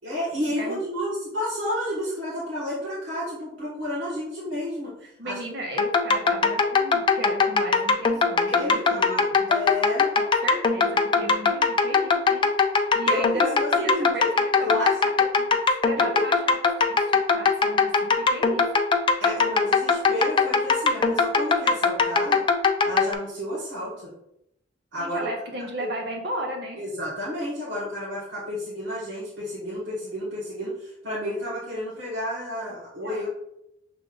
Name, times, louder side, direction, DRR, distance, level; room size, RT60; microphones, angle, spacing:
voice 1, 0.0-4.9 5.2-5.4 8.5-10.1 13.1-14.3 14.6-14.9 15.9-16.2 19.2-22.4 22.8-24.1 24.9-25.3 25.8-25.9 26.8-33.3, left 1 dB, 80° right, -9 dB, 1.4 m, -31 dB
voice 2, 5.0-9.5 10.2-14.9 15.2-15.6 15.8-18.7 25.0-26.8 32.7-33.3, equal, 60° right, 2 dB, 1.0 m, -35 dB
sound 1, 5.8-23.1, left 4 dB, 25° left, 0.3 m, -21 dB
6.1 x 3.4 x 2.4 m, 0.81 s
head